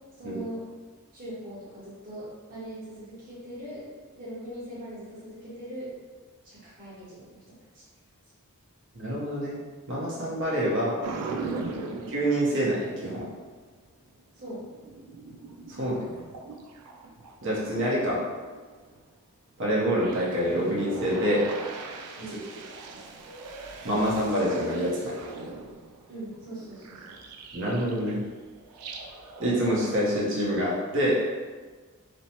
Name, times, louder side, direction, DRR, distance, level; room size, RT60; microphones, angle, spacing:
voice 1, 0.2-0.6 1.1-3.8 4.2-5.9 6.4-7.3 7.7-7.8 11.7-11.9 14.4-14.6 22.2-22.4 26.1-27.0, right 1 dB, 40° right, -9 dB, 1.1 m, -40 dB
voice 2, 8.9-9.6 9.9-11.0 12.1-13.3 15.8-16.0 17.4-18.2 19.6-21.5 23.8-25.1 27.5-28.2 29.4-31.2, equal, 55° right, -6 dB, 0.8 m, -26 dB
sound 1, 11.0-13.6 14.1-19.1 19.6-28.3 28.5-30.7, right 3 dB, 80° right, 0.3 m, -41 dB
3.2 x 2.0 x 2.8 m, 1.4 s
head